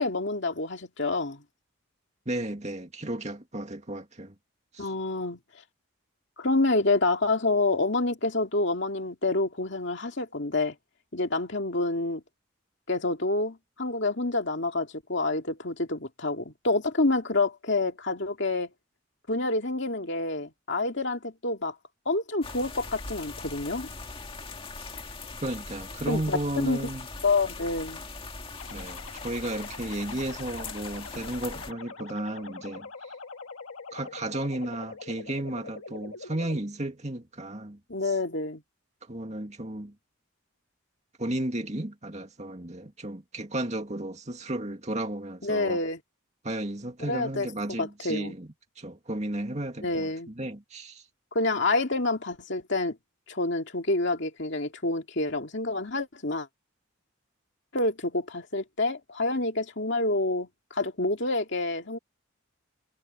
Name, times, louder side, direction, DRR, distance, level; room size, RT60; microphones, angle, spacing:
voice 1, 0.0-1.4 4.8-5.4 6.4-10.7 11.1-12.2 12.9-18.7 19.3-21.7 22.1-23.9 26.1-26.8 27.2-28.0 37.9-38.6 45.4-46.0 47.1-47.5 47.8-48.3 49.8-50.3 51.3-53.0 53.3-56.5 57.7-62.0, left 2 dB, 55° left, 2.5 m, -28 dB
voice 2, 2.3-4.3 4.7-4.9 25.4-27.1 28.7-33.1 33.9-37.8 39.0-39.9 41.2-45.8 46.4-48.5 48.8-51.0, right 1 dB, 30° right, 2.2 m, -34 dB
sound 1, 22.4-31.7, left 3 dB, 25° left, 2.1 m, -41 dB
sound 2, 28.6-36.6, left 4 dB, 75° left, 1.7 m, -43 dB
head